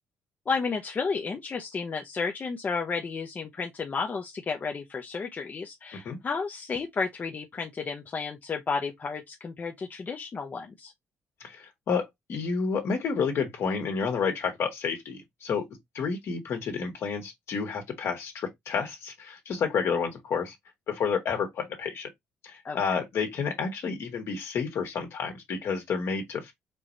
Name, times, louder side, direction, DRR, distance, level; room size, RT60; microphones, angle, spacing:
voice 1, 0.5-10.9 22.6-22.9, left 5 dB, 40° left, 0.8 m, -32 dB
voice 2, 11.4-15.6 15.9-20.5 20.9-22.1 22.4-26.5, left 5 dB, 65° left, 1.7 m, -30 dB
4.6 x 3.1 x 2.6 m
cardioid pair, 75°, 5 cm